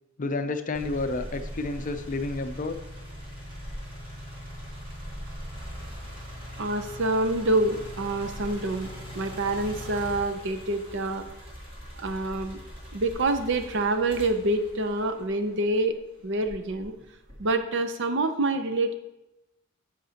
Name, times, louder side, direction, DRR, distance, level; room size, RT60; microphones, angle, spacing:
voice 1, 0.2-2.8, left 3 dB, 40° left, 8 dB, 0.5 m, -30 dB
sound 1, 0.7-15.8 16.4-17.6, equal, 40° right, 2.5 m, -41 dB
voice 2, 6.6-11.3 12.0-12.6 12.9-15.9 16.2-16.9 17.4-18.9, right 2 dB, 60° right, 8 dB, 0.7 m, -27 dB
10.5 x 6.5 x 2.9 m, 0.94 s
head